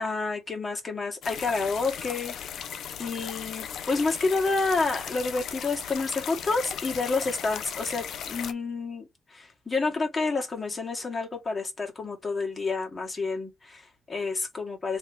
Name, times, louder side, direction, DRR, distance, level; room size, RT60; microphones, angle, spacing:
voice 1, 0.0-2.3 3.0-15.0, left 3 dB, 25° left, 1.6 m, -29 dB
sound 1, 1.2-8.5, left 8 dB, 65° left, 0.6 m, -37 dB
3.4 x 2.8 x 3.8 m
cardioid pair, 105°, 0 cm